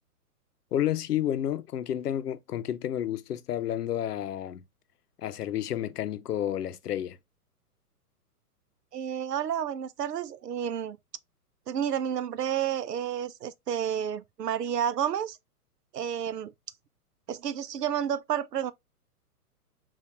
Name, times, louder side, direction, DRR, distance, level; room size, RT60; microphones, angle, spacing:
voice 1, 0.7-4.6 5.2-7.2, left 11 dB, 80° left, 0.7 m, -30 dB
voice 2, 8.9-11.0 11.7-15.4 15.9-16.5 17.3-18.7, right 9 dB, 85° right, 0.6 m, -30 dB
5.6 x 2.5 x 2.9 m
hypercardioid pair, 125°, 46 cm